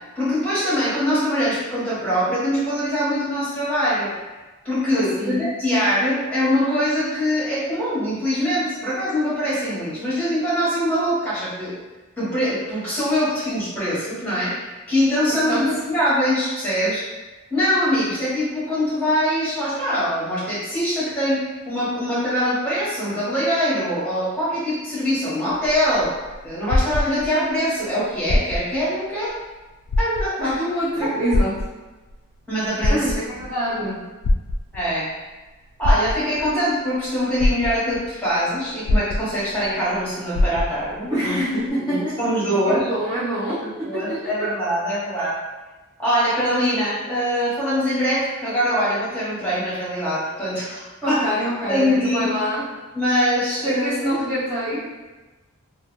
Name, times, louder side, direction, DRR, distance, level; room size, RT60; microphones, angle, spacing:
voice 1, 0.1-4.1 4.6-11.8 12.2-14.6 14.9-17.0 17.5-26.1 26.4-29.3 30.0-30.5 31.0-31.1 32.5-33.0 34.7-35.1 35.8-42.9 43.6-45.3 46.0-51.2 51.7-52.3 52.9-54.1, equal, 5° left, -11 dB, 1.1 m, -23 dB
voice 2, 4.9-5.4 15.4-15.6 30.4-31.5 32.9-34.0 41.1-42.0 42.6-44.5 51.0-52.6 53.6-54.9, equal, 20° right, -13 dB, 0.6 m, -25 dB
sound 1, 25.5-27.6 28.2-28.9 29.3-29.4 29.9-30.6 31.3-32.1 32.6-33.5 34.2-35.0 35.8-36.5 37.0-37.1 37.4-38.1 38.9-39.7 39.9-40.0 40.3-41.0 41.7-41.8, left 1 dB, 85° left, 0.3 m, -22 dB
2.4 x 2.4 x 3.0 m, 1.2 s
head